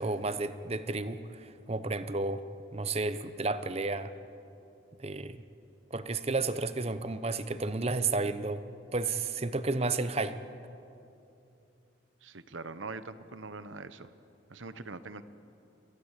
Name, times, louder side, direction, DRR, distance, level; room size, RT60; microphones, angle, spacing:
voice 1, 0.0-2.4 2.7-4.1 5.0-5.4 5.9-8.7 8.9-10.4, right 3 dB, 30° right, 12 dB, 0.8 m, -32 dB
voice 2, 12.2-14.1 14.5-15.2, right 3 dB, 85° right, 13 dB, 1.0 m, -42 dB
25.0 x 16.5 x 8.3 m, 2.7 s
head